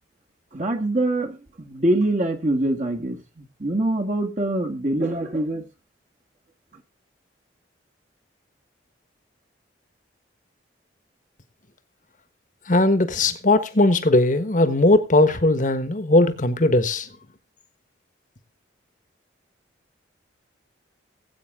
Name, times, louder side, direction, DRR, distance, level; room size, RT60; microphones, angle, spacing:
voice 1, 0.5-5.6 6.7-6.8, right 1 dB, 40° right, 1.7 m, -24 dB
voice 2, 12.7-17.1, left 2 dB, 45° left, 1.3 m, -19 dB
18.0 x 8.6 x 3.7 m
head